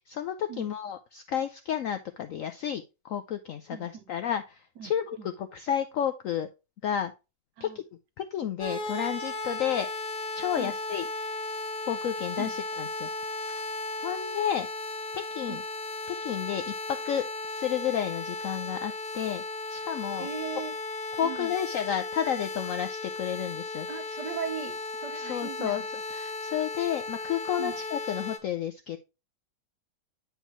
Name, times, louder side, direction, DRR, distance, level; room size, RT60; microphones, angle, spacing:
voice 1, 0.0-6.5 6.8-7.1 7.6-7.8 8.2-9.9 10.3-11.1 11.9-13.1 14.0-14.7 15.1-15.6 16.2-16.7 17.0-17.2 17.5-19.4 19.7-20.3 21.2-23.9 25.2-25.8 26.1-29.0, left 9 dB, 75° left, 0.7 m, -31 dB
voice 2, 3.7-4.1 4.8-5.3 7.6-7.8 10.6-10.8 12.4-12.6 15.5-15.6 20.2-20.7 21.2-21.5 23.9-25.9 27.6-27.7, right 7 dB, 70° right, 1.5 m, -38 dB
sound 1, 8.6-28.4, left 3 dB, 45° left, 0.8 m, -35 dB
9.0 x 4.5 x 3.1 m
omnidirectional pair, 1.9 m